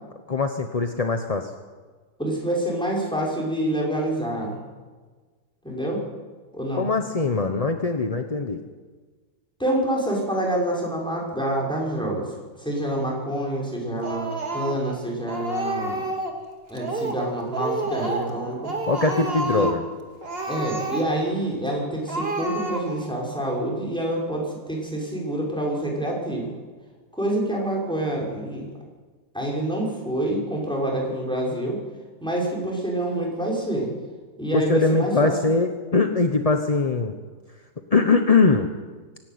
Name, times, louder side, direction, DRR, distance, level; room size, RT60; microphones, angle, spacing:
voice 1, 0.3-1.5 6.8-8.6 18.9-19.8 34.5-37.2 37.9-38.7, left 3 dB, 30° left, 6 dB, 0.8 m, -21 dB
voice 2, 2.2-4.6 5.6-6.0 6.5-6.9 9.6-16.0 16.7-18.7 19.5-19.7 20.5-26.5 27.1-28.7 29.3-31.8 32.2-33.9 34.4-35.3, right 1 dB, ahead, -3 dB, 5.8 m, -27 dB
Speech, 14.0-15.0 15.3-16.4 16.8-17.3 17.5-18.4 18.6-19.8 20.2-21.3 21.7-21.8 22.1-23.1, right 2 dB, 30° right, 2.4 m, -29 dB
25.0 x 11.5 x 9.4 m, 1.4 s
omnidirectional pair, 2.0 m